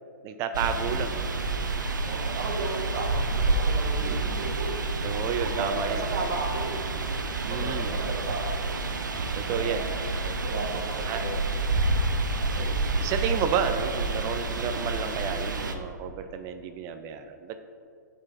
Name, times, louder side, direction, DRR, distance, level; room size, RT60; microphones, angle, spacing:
voice 1, 0.2-1.3 4.0-4.3 5.0-6.0 7.5-7.9 9.3-9.9 10.2-10.4 11.1-11.3 12.3-17.6, right 7 dB, 30° right, 8 dB, 0.4 m, -31 dB
sound 1, 0.5-15.7, right 3 dB, 80° right, 0.6 m, -29 dB
voice 2, 2.0-4.8 5.3-6.9 7.4-8.6 9.4-9.8 10.4-11.4, right 3 dB, 55° right, 1 dB, 1.4 m, -34 dB
8.4 x 4.2 x 4.3 m, 2.2 s
figure-of-eight pair, 120°, 10 cm